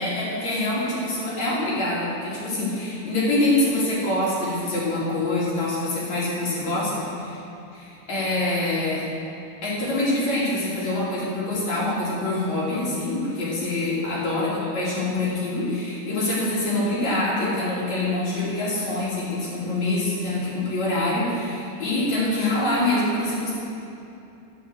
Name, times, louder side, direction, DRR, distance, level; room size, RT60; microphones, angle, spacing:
voice 1, 0.0-7.4 7.7-9.1 9.6-23.5, left 2 dB, 40° left, -8 dB, 3.5 m, -25 dB
11.5 x 7.4 x 7.9 m, 2.7 s
omnidirectional pair, 5.6 m